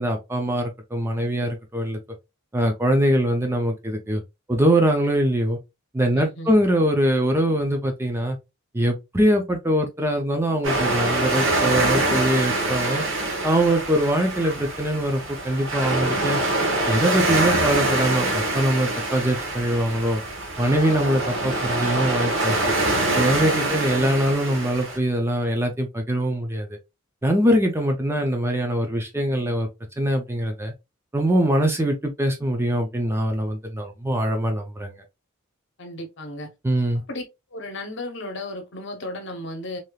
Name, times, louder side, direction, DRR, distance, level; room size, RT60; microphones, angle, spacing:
voice 1, 0.0-2.0 2.5-4.2 4.5-5.6 5.9-8.4 8.7-13.0 13.4-16.4 16.9-20.2 20.6-22.6 23.2-26.7 27.2-29.7 30.0-30.7 31.1-35.0 36.6-37.0, right 1 dB, 10° right, 0.4 m, -22 dB
voice 2, 6.1-6.6 22.9-24.1 35.8-36.5 37.1-37.2 37.5-39.8, left 1 dB, 55° left, 0.8 m, -35 dB
sound 1, 10.6-25.0, right 2 dB, 60° right, 1.0 m, -25 dB
3.3 x 2.7 x 2.3 m
head